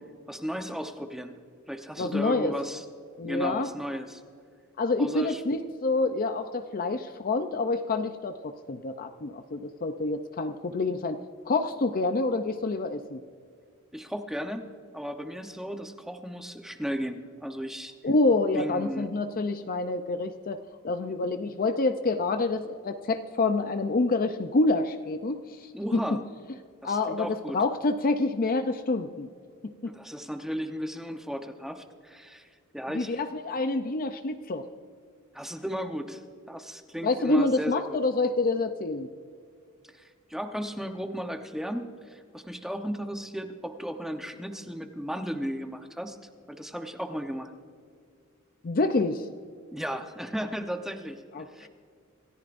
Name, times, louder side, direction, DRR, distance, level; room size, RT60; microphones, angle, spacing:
voice 1, 0.3-1.3 1.7-2.8 3.2-4.2 5.0-5.4 13.9-14.6 14.9-17.9 18.5-19.1 25.7-26.2 26.8-27.6 29.8-33.2 35.3-36.2 36.5-38.0 39.9-46.2 46.5-47.5 49.7-51.7, equal, ahead, 5 dB, 0.8 m, -35 dB
voice 2, 2.0-2.5 3.2-3.7 4.8-13.2 18.0-20.6 20.8-26.0 26.8-29.3 29.8-29.9 32.9-34.6 37.0-39.1 48.6-49.3 51.3-51.7, left 3 dB, 40° left, 8 dB, 0.6 m, -27 dB
27.0 x 14.0 x 2.6 m, 2.2 s
head